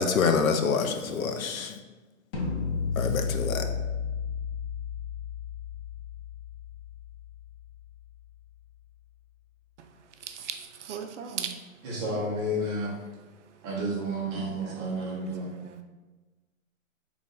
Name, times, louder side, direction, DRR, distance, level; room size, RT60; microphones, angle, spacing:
voice 1, 0.0-1.7 3.0-3.6, left 5 dB, 80° left, 0.6 m, -26 dB
sound 1, 2.3-8.3, left 5 dB, 45° left, 0.8 m, -33 dB
voice 2, 10.8-11.6 14.7-15.8, right 8 dB, 60° right, 0.5 m, -38 dB
voice 3, 11.8-12.9 13.6-15.4, right 1 dB, 15° right, 0.6 m, -31 dB
3.1 x 2.5 x 3.9 m
hypercardioid pair, 140°, 41 cm